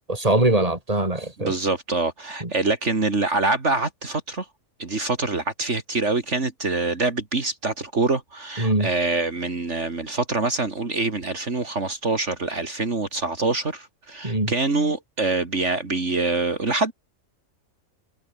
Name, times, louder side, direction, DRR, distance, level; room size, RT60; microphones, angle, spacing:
voice 1, 0.1-1.5 2.4-2.5 8.6-8.9 14.2-14.5, right 2 dB, 25° right, 4.3 m, -22 dB
voice 2, 1.4-4.5 4.8-16.9, right 3 dB, 60° right, 3.0 m, -25 dB
omnidirectional pair, 1.4 m